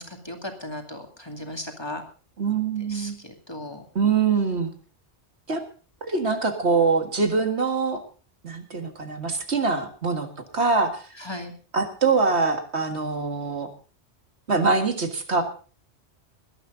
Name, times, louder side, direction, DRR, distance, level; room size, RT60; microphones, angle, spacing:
voice 1, 0.0-2.0 2.8-3.8 11.2-11.5, left 1 dB, 25° left, 3 dB, 2.4 m, -36 dB
voice 2, 2.4-3.2 4.0-4.7 5.5-5.6 6.0-8.0 8.4-10.3 10.5-11.0 11.7-13.7 14.5-15.4, right 4 dB, 75° right, 5 dB, 2.1 m, -23 dB
19.0 x 12.0 x 3.9 m, 0.38 s
omnidirectional pair, 1.1 m